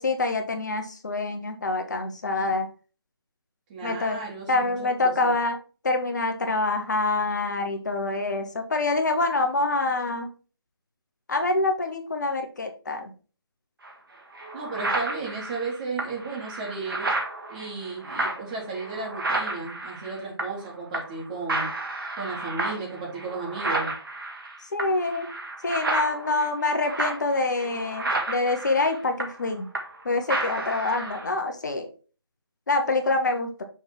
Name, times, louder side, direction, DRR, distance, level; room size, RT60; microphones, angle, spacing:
voice 1, 0.0-2.7 3.8-4.2 4.5-5.6 5.8-10.3 11.3-13.1 24.7-25.3 25.6-29.7 30.0-31.9 32.7-33.6, left 3 dB, 45° left, 5 dB, 1.0 m, -26 dB
voice 2, 3.7-5.3 14.5-17.1 17.5-21.7 22.2-23.9, right 4 dB, 20° right, -3 dB, 1.6 m, -34 dB
sound 1, 13.8-13.9 14.3-20.7 20.9-21.2 21.5-30.0 30.3-31.3, right 2 dB, 60° right, 1.7 m, -31 dB
6.3 x 3.5 x 4.4 m, 0.35 s
figure-of-eight pair, 155°, 13 cm